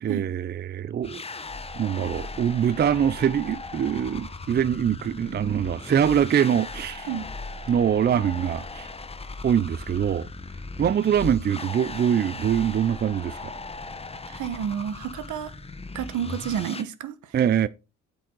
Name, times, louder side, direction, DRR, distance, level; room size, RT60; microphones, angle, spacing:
voice 1, 0.0-1.2 1.7-7.1 7.7-8.9 9.4-10.3 10.8-13.5 17.3-17.7, right 9 dB, 35° right, 0.4 m, -23 dB
sound 1, 1.0-16.8, left 3 dB, 20° left, 1.0 m, -38 dB
voice 2, 14.3-15.5 15.9-17.1, right 9 dB, 75° right, 1.3 m, -30 dB
8.4 x 6.6 x 3.9 m
cardioid pair, 90°, 30 cm